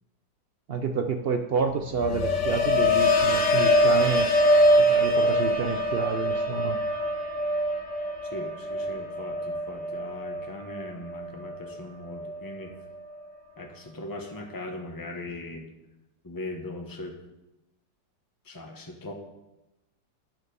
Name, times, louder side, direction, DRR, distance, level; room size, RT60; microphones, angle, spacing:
voice 1, 0.7-4.4 4.8-6.8, right 5 dB, 90° right, 7 dB, 0.5 m, -29 dB
sound 1, 1.7-11.8 12.1-12.6, left 1 dB, 70° left, 1.9 m, -24 dB
voice 2, 8.3-12.7 13.6-15.6 16.2-17.2 18.4-19.1, left 2 dB, 15° left, 2 dB, 1.2 m, -39 dB
9.9 x 6.7 x 6.8 m, 0.97 s
omnidirectional pair, 1.9 m